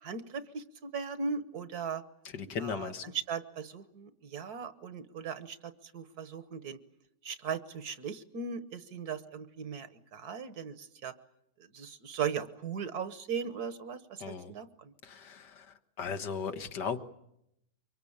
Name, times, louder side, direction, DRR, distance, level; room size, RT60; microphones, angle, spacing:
voice 1, 0.0-2.0 2.6-2.9 3.3-6.8 7.2-11.1 11.7-14.9, right 6 dB, 60° right, 12 dB, 1.6 m, -38 dB
voice 2, 2.3-3.1 14.2-14.5 15.0-17.0, left 6 dB, 70° left, 8 dB, 1.9 m, -37 dB
24.0 x 23.0 x 8.7 m, 0.81 s
omnidirectional pair, 1.9 m